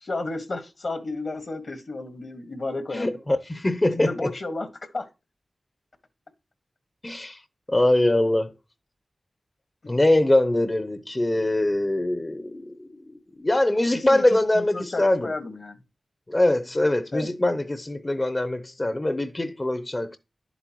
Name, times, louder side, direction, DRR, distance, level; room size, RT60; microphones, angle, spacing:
voice 1, 0.0-3.2 3.9-5.1 9.8-10.0 13.9-15.8 17.1-17.3, left 2 dB, 65° left, 1.6 m, -33 dB
voice 2, 2.9-4.3 7.0-7.4 7.7-8.5 9.9-15.3 16.3-20.2, left 1 dB, 35° left, 0.7 m, -23 dB
11.0 x 8.0 x 3.0 m
cardioid pair, 45°, 0 cm